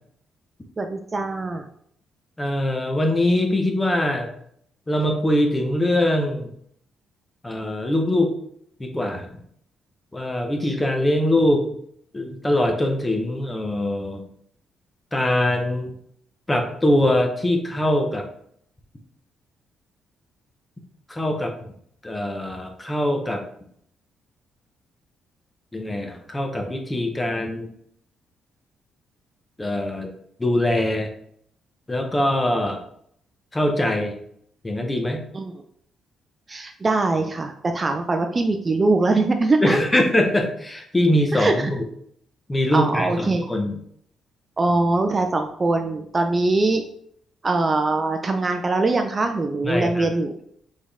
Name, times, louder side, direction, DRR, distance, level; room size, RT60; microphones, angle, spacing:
voice 1, 0.8-1.6 35.3-35.5 36.5-40.0 41.3-41.7 42.7-43.5 44.6-46.8 47.4-50.3, right 2 dB, 30° right, 6 dB, 0.4 m, -22 dB
voice 2, 2.4-4.3 4.9-6.5 7.4-8.3 8.8-9.4 10.1-11.6 12.1-14.2 15.1-15.9 16.5-18.3 21.1-21.5 22.0-23.4 25.7-27.7 29.6-30.1 30.4-31.1 31.9-32.8 33.5-34.2 34.6-35.2 39.6-41.8 42.5-43.8 49.6-50.1, left 1 dB, 15° left, 4 dB, 0.9 m, -22 dB
4.2 x 3.6 x 3.4 m, 0.68 s
cardioid pair, 90°, 0 cm